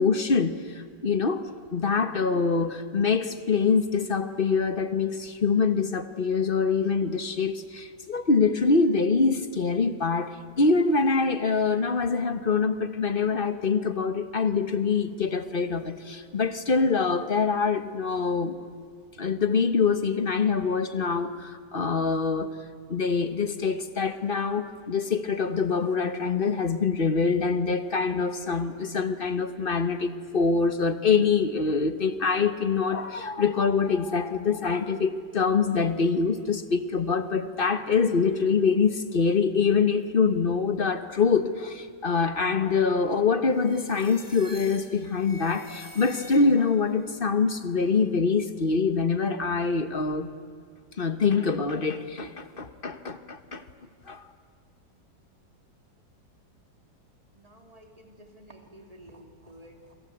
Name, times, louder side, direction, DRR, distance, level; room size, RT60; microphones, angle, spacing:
voice 1, 0.0-18.6 19.2-22.5 22.9-50.3 51.0-53.6 54.1-54.3, left 5 dB, 35° left, 10 dB, 1.0 m, -25 dB
sound 1, 43.5-46.8, left 1 dB, 10° left, 3.1 m, -46 dB
voice 2, 57.3-59.9, right 1 dB, 20° right, 3 dB, 3.2 m, -51 dB
28.5 x 26.0 x 8.1 m, 2.1 s
omnidirectional pair, 2.0 m